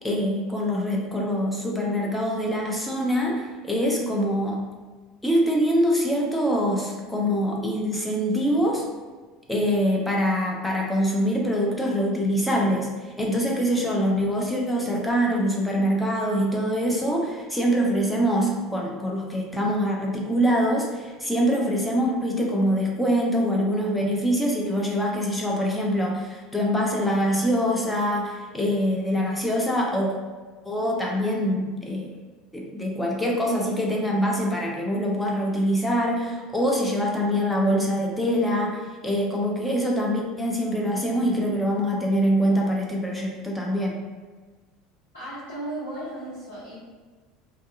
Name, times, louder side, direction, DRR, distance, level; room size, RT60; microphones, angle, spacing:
voice 1, 0.0-4.6 5.2-8.9 9.5-30.2 30.6-32.1 32.5-44.0, equal, 5° left, -2 dB, 0.5 m, -24 dB
voice 2, 45.1-46.7, right 1 dB, 75° left, -14 dB, 1.0 m, -35 dB
2.6 x 2.3 x 2.3 m, 1.4 s
figure-of-eight pair, 70°, 0 cm